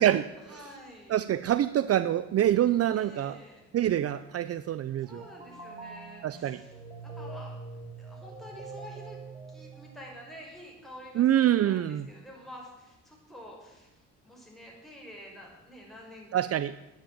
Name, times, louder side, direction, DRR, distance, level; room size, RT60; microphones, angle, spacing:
voice 1, 0.4-1.1 2.9-3.6 5.0-7.7 8.0-9.2 9.5-16.3, equal, ahead, -2 dB, 5.5 m, -48 dB
voice 2, 1.1-3.4 3.7-5.2 6.2-6.6 11.2-12.1 16.3-16.7, right 11 dB, 55° right, 14 dB, 0.5 m, -25 dB
sound 1, 5.0-10.4, right 3 dB, 20° right, 3.2 m, -44 dB
10.5 x 9.2 x 8.6 m, 0.99 s
cardioid pair, 90°, 30 cm